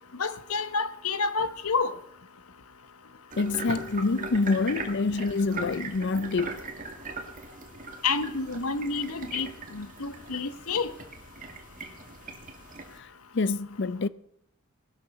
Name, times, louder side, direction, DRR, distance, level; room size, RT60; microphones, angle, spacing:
voice 1, 0.2-2.0 3.7-3.8 8.0-10.9, left 4 dB, 85° left, 1.3 m, -29 dB
sound 1, 3.3-13.0, right 3 dB, 35° right, 2.2 m, -40 dB
voice 2, 3.4-6.5 13.0-13.1 13.3-14.1, left 3 dB, 55° left, 0.5 m, -26 dB
19.0 x 12.5 x 6.0 m
head